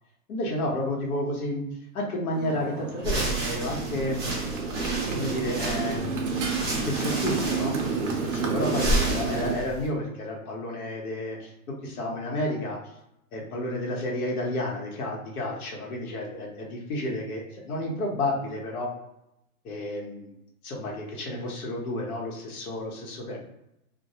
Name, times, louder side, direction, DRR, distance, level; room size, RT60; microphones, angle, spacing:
voice 1, 0.3-1.6 1.9-4.2 5.1-6.5 6.8-11.5 11.8-12.8 13.3-18.9 19.6-20.4 20.6-23.4, left 1 dB, 75° left, -1 dB, 1.0 m, -31 dB
Motorcycle, 2.3-9.6, right 4 dB, 55° right, 0.7 m, -30 dB
sound 1, 3.0-9.9, right 1 dB, 20° right, 0.4 m, -32 dB
2.2 x 2.1 x 2.7 m, 0.85 s
hypercardioid pair, 165°, 44 cm